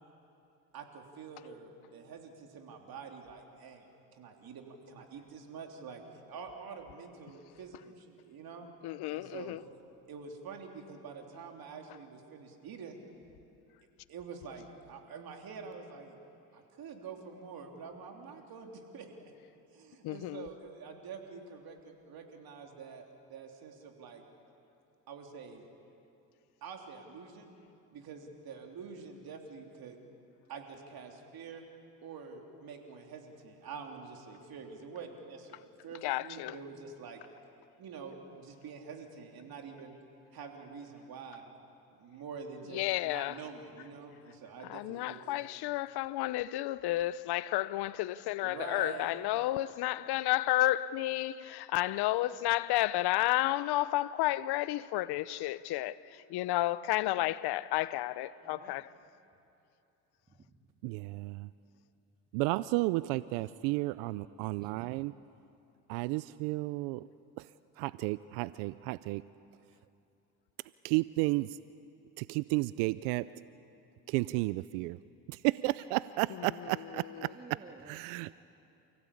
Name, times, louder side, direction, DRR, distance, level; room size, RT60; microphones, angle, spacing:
voice 1, 0.7-3.9 4.1-6.0 6.3-8.7 9.1-9.8 10.1-13.0 14.1-16.1 16.5-19.1 19.7-24.2 25.1-25.7 26.6-27.5 27.9-30.0 30.5-31.6 32.0-37.2 37.8-39.9 40.3-41.4 41.9-45.5 48.4-49.1, right 5 dB, 60° right, 3.4 m, -46 dB
voice 2, 8.8-9.6 20.0-20.5 36.0-36.5 42.7-43.4 44.7-58.8, left 16 dB, 65° left, 0.7 m, -31 dB
voice 3, 58.4-58.9 60.3-60.7 64.4-65.2 77.1-78.3, right 3 dB, 20° right, 2.2 m, -55 dB
voice 4, 60.8-61.5 62.3-65.1 65.9-67.1 67.4-67.5 67.8-69.2 70.8-71.6 72.2-73.3 74.1-75.0 75.3-77.3 77.9-78.3, right 20 dB, 85° right, 0.5 m, -32 dB
29.5 x 16.5 x 8.6 m
supercardioid pair, 85°, 41 cm